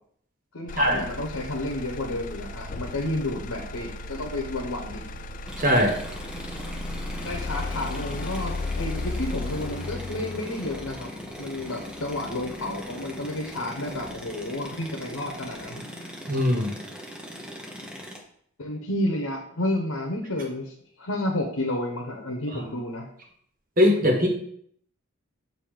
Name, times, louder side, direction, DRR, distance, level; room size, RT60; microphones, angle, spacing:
voice 1, 0.5-5.0 7.2-11.1 11.4-15.8 18.6-23.1, left 1 dB, 90° left, 0 dB, 1.0 m, -31 dB
Motor vehicle (road), 0.7-14.7 15.2-15.7, left 2 dB, 40° left, 0.3 m, -36 dB
sound 1, 5.5-18.2, equal, 5° right, 0.8 m, -40 dB
voice 2, 5.6-6.0 16.3-16.8 23.8-24.3, left 1 dB, 40° right, 1 dB, 1.3 m, -20 dB
7.6 x 2.7 x 5.0 m, 0.66 s
head